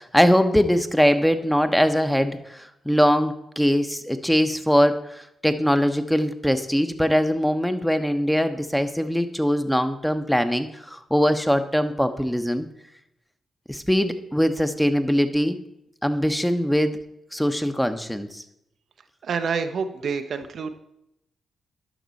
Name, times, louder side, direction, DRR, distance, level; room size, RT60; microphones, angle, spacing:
voice 1, 0.0-12.7 13.7-15.6 16.0-17.0 17.3-18.4, equal, 5° left, 8 dB, 1.0 m, -22 dB
voice 2, 19.2-20.8, right 5 dB, 65° right, 8 dB, 0.6 m, -28 dB
11.5 x 5.9 x 4.1 m, 0.82 s
hypercardioid pair, 40°, 0 cm